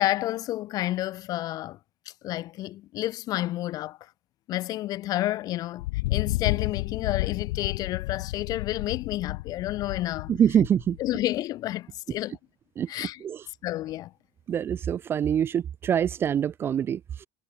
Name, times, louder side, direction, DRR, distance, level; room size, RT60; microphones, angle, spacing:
voice 1, 0.0-1.8 2.2-4.1 4.5-10.3 11.0-12.4 12.9-13.2 13.6-14.1, left 15 dB, 30° left, 0.8 m, -30 dB
Thunder, 5.8-11.3, left 21 dB, 75° left, 2.2 m, -31 dB
voice 2, 10.3-11.0 12.8-12.9 13.2-13.4 14.5-17.3, right 9 dB, 20° right, 0.5 m, -25 dB
cardioid pair, 180°, 12 cm